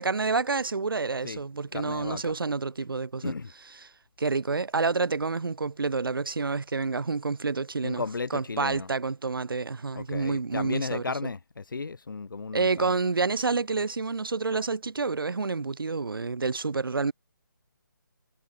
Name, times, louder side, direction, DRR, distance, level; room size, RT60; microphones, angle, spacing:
voice 1, 0.0-3.3 3.8-3.9 4.2-8.0 8.3-11.0 12.5-17.1, right 4 dB, 90° right, 1.2 m, -28 dB
voice 2, 1.7-2.4 3.2-3.5 7.8-8.9 10.0-12.9, left 4 dB, 70° left, 2.2 m, -34 dB
hypercardioid pair, 170°, 11 cm